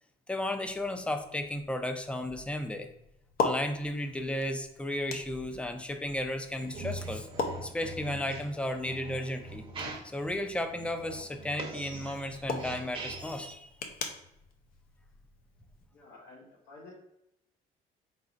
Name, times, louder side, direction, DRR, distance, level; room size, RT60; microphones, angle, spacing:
voice 1, 0.3-2.9 3.4-7.3 7.6-9.6 10.1-13.7, left 1 dB, 5° left, 7 dB, 0.5 m, -34 dB
sound 1, 0.7-15.9, left 3 dB, 60° left, 0.7 m, -41 dB
sound 2, 6.5-13.5, right 2 dB, 30° right, 0.8 m, -42 dB
voice 2, 15.9-16.9, left 3 dB, 80° left, -6 dB, 1.2 m, -51 dB
4.0 x 4.0 x 2.5 m, 0.83 s
cardioid pair, 110°, 17 cm